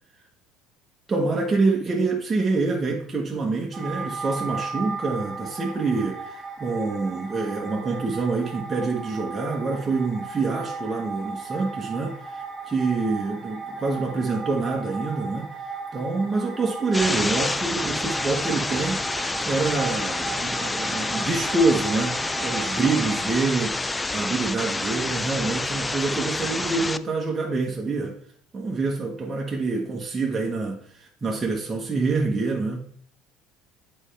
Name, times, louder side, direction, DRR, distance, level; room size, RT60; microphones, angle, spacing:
voice 1, 1.1-6.2 6.6-12.2 12.7-15.5 15.9-23.8 24.1-28.2 28.5-32.9, right 3 dB, 25° right, 1.3 m, -26 dB
sound 1, 3.7-23.2, right 4 dB, 5° right, 1.4 m, -36 dB
sound 2, 16.9-27.0, left 2 dB, 15° left, 0.3 m, -28 dB
8.0 x 4.4 x 3.4 m
supercardioid pair, 95°, 0 cm